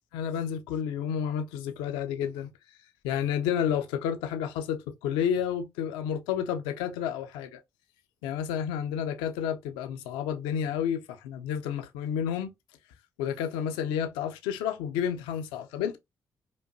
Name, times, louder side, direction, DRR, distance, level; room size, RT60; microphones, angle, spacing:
voice 1, 0.1-2.5 3.0-7.6 8.2-12.5 13.2-16.0, left 8 dB, 90° left, 0.5 m, -30 dB
5.2 x 2.3 x 2.5 m
hypercardioid pair, 50°, 8 cm